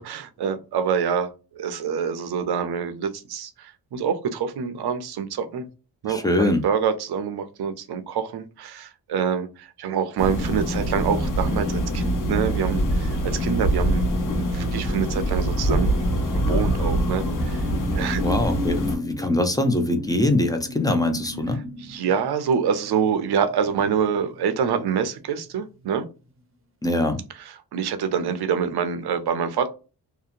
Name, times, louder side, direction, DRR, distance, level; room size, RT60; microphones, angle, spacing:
voice 1, 0.0-5.7 6.0-14.1 14.4-16.1 16.3-17.6 17.9-18.2 21.8-26.0 27.4-29.7, right 7 dB, 70° right, 8 dB, 0.6 m, -26 dB
voice 2, 6.1-6.6 18.2-21.6 26.8-27.2, left 1 dB, 10° left, 6 dB, 0.4 m, -23 dB
sound 1, 10.2-19.0, right 1 dB, 50° left, 1.1 m, -24 dB
sound 2, 16.8-25.0 25.3-25.6, left 3 dB, 30° right, 0.6 m, -35 dB
2.8 x 2.1 x 2.4 m, 0.31 s
wide cardioid pair, 125°, 40 cm